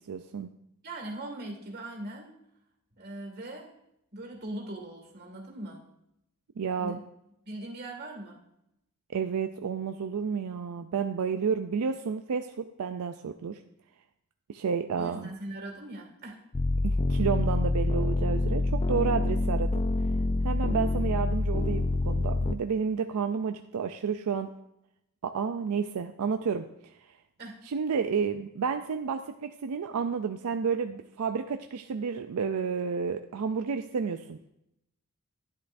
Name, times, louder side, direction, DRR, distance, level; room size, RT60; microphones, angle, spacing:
voice 1, 0.1-0.5 6.6-7.0 9.1-13.6 14.5-15.3 16.8-19.8 20.4-24.5 25.2-26.6 27.7-34.4, right 6 dB, 80° right, 7 dB, 0.4 m, -31 dB
voice 2, 0.8-2.3 3.0-3.7 4.1-5.8 6.8-7.0 7.4-8.4 15.0-16.4 27.4-27.6, right 1 dB, 45° right, 1 dB, 2.0 m, -40 dB
sound 1, 16.5-22.5, left 2 dB, 25° left, 0.3 m, -26 dB
11.5 x 10.5 x 2.6 m, 0.82 s
head